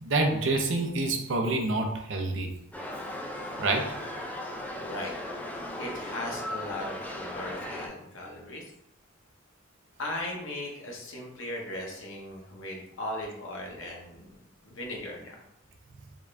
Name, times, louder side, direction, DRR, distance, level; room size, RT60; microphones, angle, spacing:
voice 1, 0.0-2.5 3.6-4.0, right 2 dB, 65° right, 3 dB, 0.6 m, -27 dB
sound 1, 2.7-7.9, left 1 dB, 10° left, 0.4 m, -37 dB
voice 2, 4.8-5.1 5.8-8.6 10.0-15.4, left 1 dB, 75° left, -1 dB, 0.9 m, -38 dB
3.6 x 2.5 x 3.3 m, 0.79 s
head